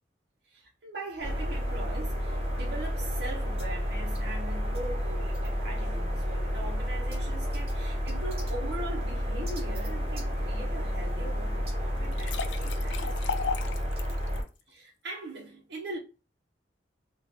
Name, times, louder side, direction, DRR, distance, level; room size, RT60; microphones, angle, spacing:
voice 1, 0.4-13.5 14.7-16.0, right 2 dB, 65° right, 0.8 m, -41 dB
sound 1, 1.2-14.4, equal, 35° right, 1.0 m, -31 dB
sound 2, 12.0-14.4, left 6 dB, 80° left, 0.4 m, -35 dB
3.9 x 2.3 x 3.5 m
head